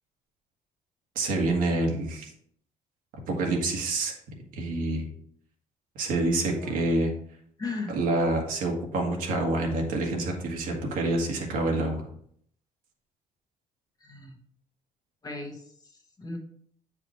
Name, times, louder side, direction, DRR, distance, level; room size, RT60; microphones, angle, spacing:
voice 1, 1.1-2.3 3.3-4.1 4.5-5.1 5.9-7.1 7.9-12.1, right 2 dB, 75° right, 1 dB, 1.6 m, -27 dB
voice 2, 7.6-8.0 14.0-14.4 15.2-16.4, left 3 dB, 25° left, 2 dB, 1.4 m, -37 dB
7.8 x 4.9 x 3.1 m, 0.65 s
cardioid pair, 105°, 14 cm